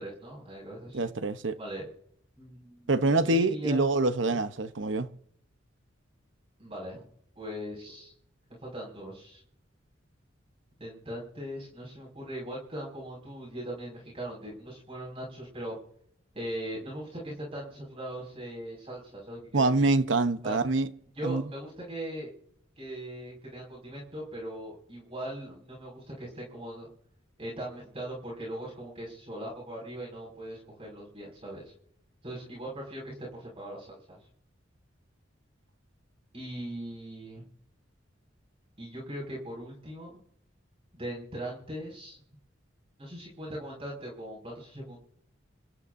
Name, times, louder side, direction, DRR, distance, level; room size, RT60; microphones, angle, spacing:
voice 1, 0.0-1.0 1.6-1.9 2.4-3.8 4.3-4.4 6.6-7.0 7.4-8.1 8.6-9.4 10.8-15.8 16.3-19.9 20.4-20.6 21.1-22.3 22.8-26.9 27.4-31.7 32.2-34.2 36.3-37.4 38.8-40.1 40.9-42.2 43.0-45.0, right 1 dB, 30° right, 5.8 m, -40 dB
voice 2, 0.9-1.6 2.9-5.1 19.5-20.9 21.2-21.4, right 2 dB, 70° right, 1.0 m, -25 dB
28.5 x 14.0 x 2.7 m
head